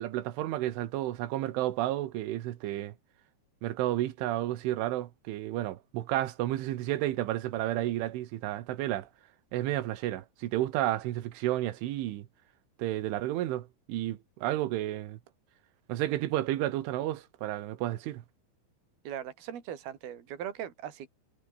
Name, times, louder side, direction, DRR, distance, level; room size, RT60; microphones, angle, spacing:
voice 1, 0.0-2.9 3.6-9.1 9.5-12.3 12.8-15.2 15.9-18.2, right 14 dB, 85° right, 4.0 m, -31 dB
voice 2, 19.0-21.1, right 10 dB, 55° right, 4.8 m, -39 dB
omnidirectional pair, 5.4 m